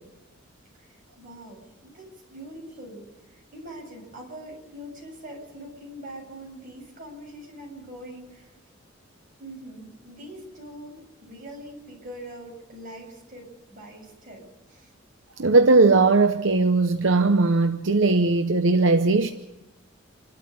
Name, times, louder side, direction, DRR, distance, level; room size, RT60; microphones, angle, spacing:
voice 1, 1.2-3.0 3.5-8.5 9.4-14.4 14.7-14.9, right 1 dB, 40° right, 7.6 m, -42 dB
voice 2, 15.4-19.3, right 3 dB, 70° right, 0.9 m, -19 dB
28.0 x 13.0 x 8.7 m
head